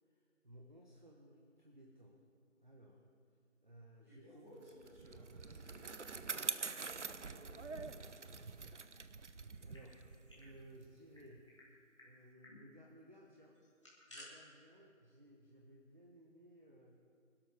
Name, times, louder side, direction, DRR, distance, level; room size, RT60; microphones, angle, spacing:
voice 1, 0.1-2.2 2.6-3.0 3.6-4.6 8.4-8.8 9.1-11.5 12.0-13.6 14.1-17.0, right 1 dB, 35° right, 0 dB, 1.0 m, -60 dB
voice 2, 4.1-8.5, equal, 10° right, -12 dB, 3.3 m, -60 dB
Bicycle, 4.7-11.4, right 4 dB, 65° right, 0.7 m, -45 dB
sound 1, 9.5-10.5 10.8-10.9 11.1-11.7 12.0-12.1 12.4-12.6 13.6-14.3, left 1 dB, 20° left, 2.2 m, -58 dB
24.5 x 12.5 x 3.5 m, 2.3 s
figure-of-eight pair, 180°, 39 cm